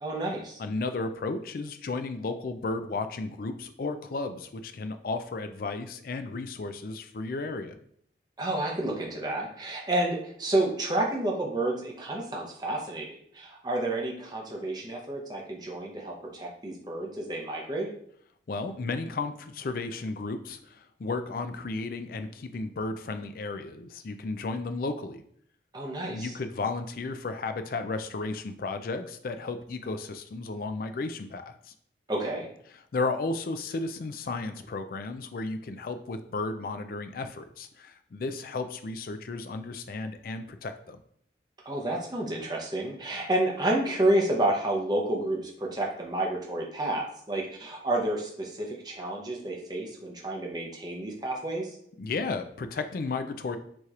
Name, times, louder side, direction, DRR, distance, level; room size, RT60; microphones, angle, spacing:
voice 1, 0.0-0.6 8.4-17.9 25.7-26.3 32.1-32.5 41.7-51.7, right 1 dB, 20° right, -1 dB, 0.7 m, -30 dB
voice 2, 0.6-7.8 18.5-25.2 26.1-31.7 32.9-41.0 52.0-53.6, left 3 dB, 50° left, 8 dB, 0.4 m, -34 dB
6.0 x 2.9 x 2.4 m, 0.65 s
head